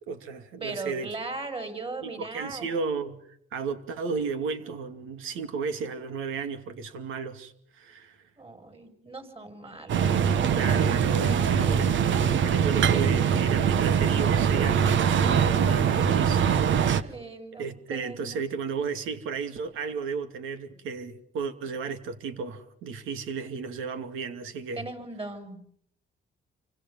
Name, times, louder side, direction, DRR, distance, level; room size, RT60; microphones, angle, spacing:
voice 1, 0.1-1.1 2.0-3.2 3.5-8.2 10.6-12.0 12.4-17.1 17.6-24.8, right 5 dB, 90° right, 2.6 m, -34 dB
voice 2, 0.6-2.7 8.4-10.2 11.6-12.0 12.9-13.2 17.0-18.4 24.8-25.8, right 3 dB, 30° right, 6.8 m, -38 dB
sound 1, 9.9-17.0, right 7 dB, 70° right, 1.4 m, -23 dB
28.5 x 25.5 x 5.6 m
cardioid pair, 90°, 20 cm